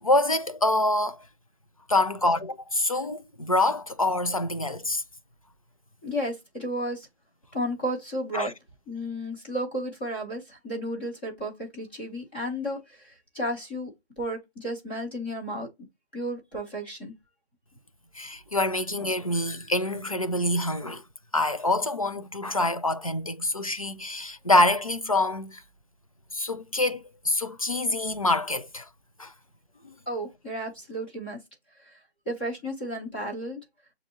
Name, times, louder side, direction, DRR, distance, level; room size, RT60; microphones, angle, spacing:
voice 1, 0.0-1.2 1.9-5.0 8.3-8.5 18.1-21.0 21.3-25.6 26.3-28.9 29.2-29.3 29.8-29.9, left 2 dB, 35° left, 0.4 m, -26 dB
voice 2, 6.0-7.1 7.5-8.5 8.9-13.9 14.2-15.7 16.1-17.1 30.1-31.4 31.8-32.0 32.3-33.6, equal, 10° left, 0.8 m, -33 dB
7.0 x 2.7 x 2.7 m
hypercardioid pair, 170°, 32 cm